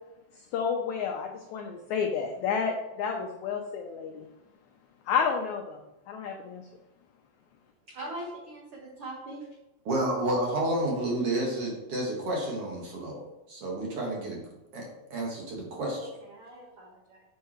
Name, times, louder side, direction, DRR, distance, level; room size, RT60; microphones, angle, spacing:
voice 1, 0.5-4.3 5.1-5.8 6.1-6.6, left 6 dB, 80° left, 2 dB, 1.7 m, -30 dB
voice 2, 7.9-9.5 15.9-17.2, right 1 dB, 90° right, -2 dB, 1.2 m, -42 dB
voice 3, 9.9-13.2 13.5-14.4 14.7-16.0, right 1 dB, 50° right, -2 dB, 2.0 m, -30 dB
7.4 x 5.6 x 4.3 m, 0.95 s
omnidirectional pair, 4.1 m